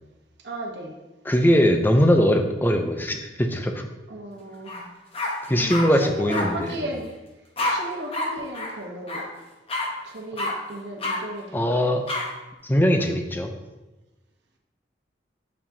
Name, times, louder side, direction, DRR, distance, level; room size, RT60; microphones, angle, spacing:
voice 1, 0.4-0.9 4.1-4.9 5.6-7.2 7.7-9.2 10.0-12.0, right 1 dB, 70° right, 1 dB, 0.9 m, -35 dB
voice 2, 1.3-3.9 5.5-6.9 11.5-12.0 12.6-13.5, equal, 10° left, 5 dB, 0.4 m, -21 dB
sound 1, 4.7-4.8 5.1-5.9 6.3-6.4 7.6-7.7 8.1-8.3 8.5-8.7 9.1-9.2 9.7-9.9 10.4-10.5 11.0-11.2 12.1-12.2, left 2 dB, 30° left, 0.9 m, -27 dB
7.3 x 4.8 x 2.7 m, 1.1 s
head